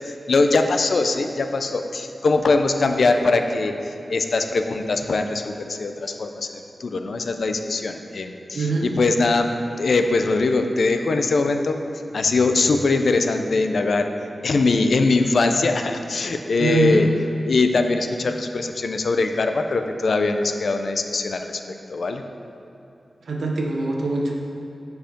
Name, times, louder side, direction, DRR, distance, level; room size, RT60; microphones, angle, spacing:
voice 1, 0.0-9.5 9.8-11.8 12.1-14.1 14.4-17.1 17.4-21.6 21.9-22.2, left 3 dB, 75° left, 6 dB, 0.5 m, -21 dB
voice 2, 8.5-8.9 16.6-17.0 23.3-24.3, right 3 dB, 90° right, 0 dB, 0.9 m, -23 dB
7.7 x 4.6 x 5.1 m, 2.9 s
wide cardioid pair, 100°, 0 cm